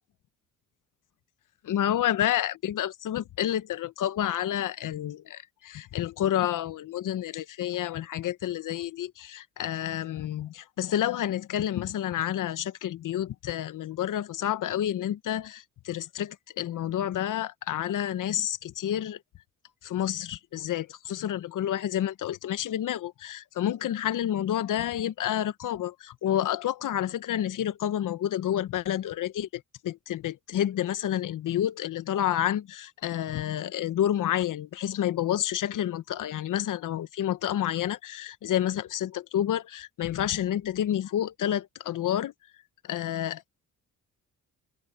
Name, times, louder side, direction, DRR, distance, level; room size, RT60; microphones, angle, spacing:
voice 1, 1.6-19.2 19.8-42.3 42.8-43.6, left 11 dB, 65° left, 1.0 m, -29 dB
open air
cardioid pair, 85°, 33 cm